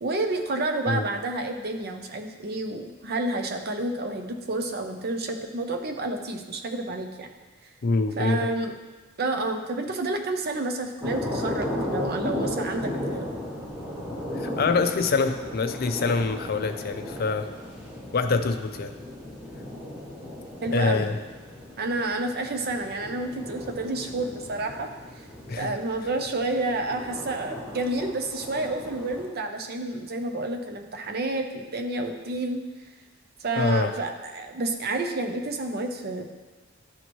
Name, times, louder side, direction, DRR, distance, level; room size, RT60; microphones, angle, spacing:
voice 1, 0.0-7.3 8.2-8.7 9.2-13.3 20.6-21.1 21.8-24.9 25.6-32.6 33.4-36.2, right 2 dB, 50° right, 5 dB, 0.7 m, -29 dB
voice 2, 7.8-8.5 14.3-17.5 18.1-18.9 20.7-21.2 25.5-25.7 33.6-33.9, left 4 dB, 50° left, 7 dB, 0.5 m, -25 dB
sound 1, 11.0-29.2, left 1 dB, 25° right, 2.3 m, -35 dB
12.0 x 4.3 x 3.1 m, 1.3 s
head